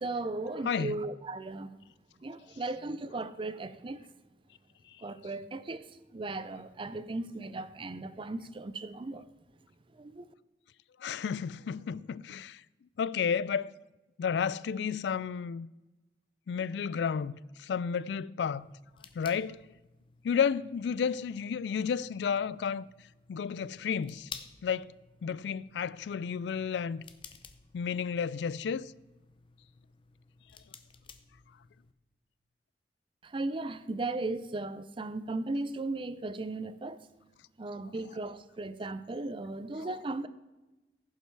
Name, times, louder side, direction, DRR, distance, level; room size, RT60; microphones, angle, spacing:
voice 1, 0.0-1.7 2.2-4.1 5.0-9.3 9.9-10.3 33.2-37.1 37.6-40.3, right 2 dB, 30° right, 0.5 m, -36 dB
voice 2, 0.6-1.0 11.0-12.6 13.0-13.7 14.2-15.7 16.5-18.7 19.1-19.6 20.2-22.9 23.3-24.3 24.6-24.9 25.2-27.0 27.7-28.9, left 7 dB, 75° left, 0.3 m, -32 dB
sound 1, 18.4-31.9, left 6 dB, 30° left, 0.6 m, -54 dB
15.5 x 5.6 x 4.7 m
head